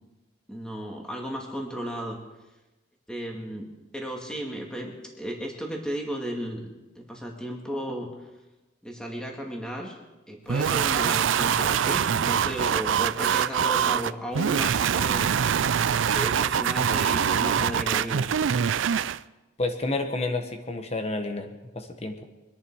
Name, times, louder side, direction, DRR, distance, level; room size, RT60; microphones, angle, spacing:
voice 1, 0.5-2.2 3.1-3.7 3.9-6.7 7.1-8.1 8.8-10.0 10.3-15.3 16.1-18.3, equal, 5° left, 0 dB, 2.2 m, -34 dB
sound 1, 10.5-19.2, right 8 dB, 80° right, 0.4 m, -24 dB
voice 2, 19.6-22.2, left 2 dB, 35° left, 5 dB, 1.5 m, -30 dB
24.5 x 11.0 x 4.8 m, 1.1 s
head